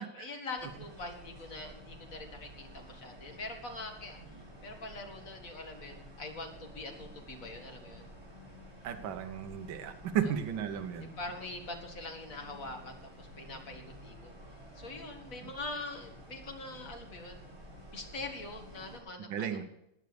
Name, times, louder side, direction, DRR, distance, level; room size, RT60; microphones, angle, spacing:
voice 1, 0.0-8.1 11.2-14.3 14.7-17.5 17.9-19.5, left 2 dB, 40° left, 3 dB, 2.3 m, -43 dB
sound 1, 0.6-19.0, equal, 35° right, 4.0 m, -51 dB
voice 2, 8.8-11.1 15.4-15.5 19.3-19.6, right 8 dB, 65° right, 6 dB, 1.8 m, -34 dB
19.0 x 6.4 x 7.0 m, 0.82 s
omnidirectional pair, 2.4 m